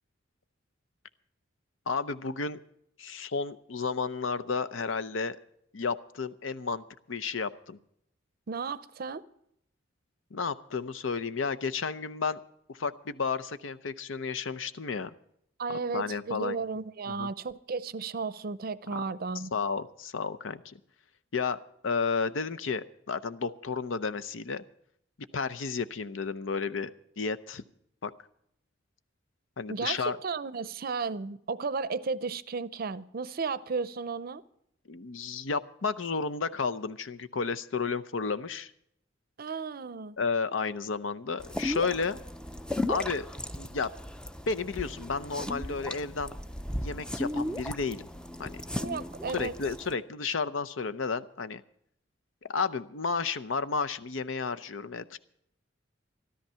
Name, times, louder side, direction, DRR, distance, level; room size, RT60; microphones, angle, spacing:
voice 1, 1.9-2.6 3.0-5.4 5.7-7.8 10.3-12.4 12.7-15.1 15.7-16.6 17.1-17.3 18.9-19.0 19.5-20.8 21.3-24.6 25.3-26.9 27.2-27.6 28.0-28.1 29.6-30.2 34.9-38.7 40.2-42.2 42.9-43.3 43.5-43.9 44.5-46.4 46.8-48.1 48.4-48.6 49.3-51.6 52.4-55.2, left 5 dB, 90° left, 0.7 m, -32 dB
voice 2, 8.5-9.2 15.6-19.5 29.7-34.4 39.4-40.2 48.8-49.6, right 4 dB, 50° right, 0.5 m, -34 dB
sound 1, 41.4-49.9, left 1 dB, 5° left, 0.4 m, -36 dB
13.5 x 13.0 x 5.6 m
head